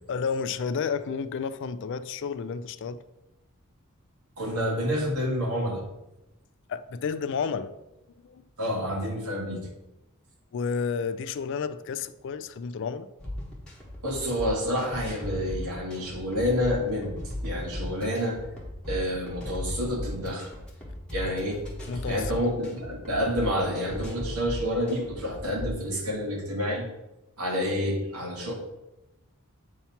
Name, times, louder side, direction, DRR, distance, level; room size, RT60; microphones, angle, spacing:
voice 1, 0.1-3.0 6.7-7.8 8.2-8.4 10.5-13.1 21.9-22.3, left 5 dB, 55° left, 0.3 m, -31 dB
voice 2, 4.4-5.8 8.6-9.7 14.0-17.2 17.4-18.4 18.9-20.5 21.1-21.6 22.1-26.9 27.4-28.5, equal, 85° right, 1.5 m, -28 dB
sound 1, 13.2-25.9, left 1 dB, 5° left, 1.2 m, -37 dB
8.0 x 2.9 x 5.7 m
head